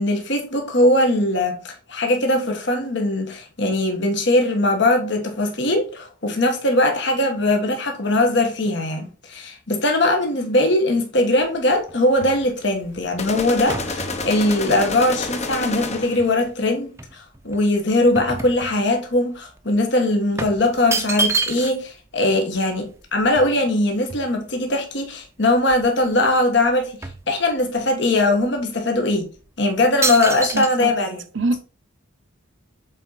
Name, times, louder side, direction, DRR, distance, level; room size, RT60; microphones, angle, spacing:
voice 1, 0.0-27.0 27.3-29.3 29.6-31.2, left 1 dB, 60° left, 1.4 m, -20 dB
sound 1, 11.4-16.5 17.0-19.2 19.5-19.6 20.4-22.0 22.3-22.4 22.5-24.7 25.2-25.3 25.6-26.4 26.6-27.9 28.5-28.6 29.2-29.5 30.0-30.7, right 3 dB, 15° right, 0.6 m, -29 dB
sound 2, 13.2-16.3, left 3 dB, 35° left, 0.8 m, -29 dB
voice 2, 30.5-30.9 31.3-31.6, right 3 dB, 65° right, 0.7 m, -23 dB
7.3 x 4.2 x 4.0 m
head